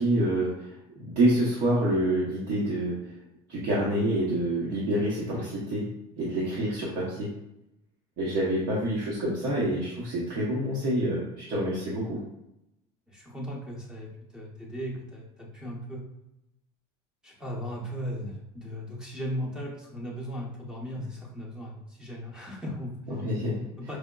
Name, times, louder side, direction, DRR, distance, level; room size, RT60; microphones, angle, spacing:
voice 1, 0.0-3.0 3.5-7.3 8.2-12.2 23.1-23.6, right 1 dB, 60° right, -6 dB, 0.9 m, -27 dB
voice 2, 13.1-16.0 17.2-23.0 23.6-24.0, equal, 5° right, -3 dB, 0.8 m, -37 dB
4.9 x 2.1 x 2.2 m, 0.87 s
cardioid pair, 145°, 13 cm